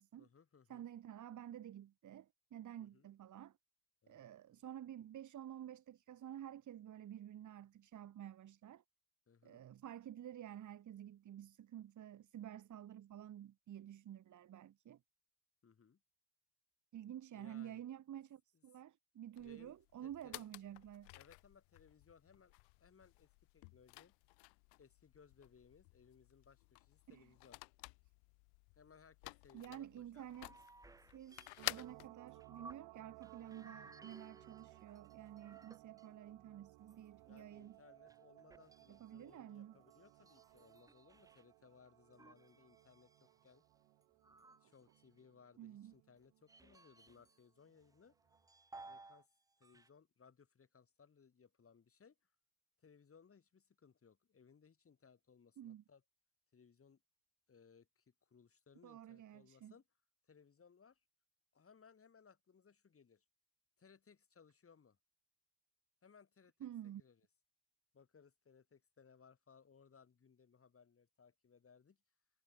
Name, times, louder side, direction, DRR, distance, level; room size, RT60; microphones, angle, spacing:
voice 1, 0.2-0.9 2.8-3.1 4.0-4.4 9.3-9.7 15.6-16.0 17.4-17.8 18.5-18.6 19.4-19.7 20.0-20.5 21.1-23.3 23.5-24.1 24.8-27.6 28.7-30.3 36.3-36.4 37.2-43.6 44.6-48.2 48.8-49.3 49.6-52.2 52.8-56.0 56.5-57.0 57.5-59.8 60.2-61.0 61.5-63.2 63.8-65.0 66.0-67.2 67.9-72.0, left 6 dB, 30° left, 3.7 m, -65 dB
voice 2, 0.7-3.6 4.1-8.8 9.4-15.0 16.9-21.1 27.1-27.3 29.5-30.5 31.1-37.8 38.9-39.8 45.6-45.9 55.6-55.8 58.8-59.7 66.6-67.0, right 11 dB, 40° right, 1.3 m, -51 dB
sound 1, 19.4-32.1, left 35 dB, 80° left, 1.0 m, -52 dB
sound 2, 30.2-33.0 33.2-36.3 36.8-41.4 42.1-45.2 45.9-47.4 47.8-49.2 49.5-49.9, right 3 dB, 10° right, 0.6 m, -61 dB
sound 3, 31.6-47.3 47.7-47.8, right 22 dB, 70° right, 1.4 m, -62 dB
supercardioid pair, 85°, 44 cm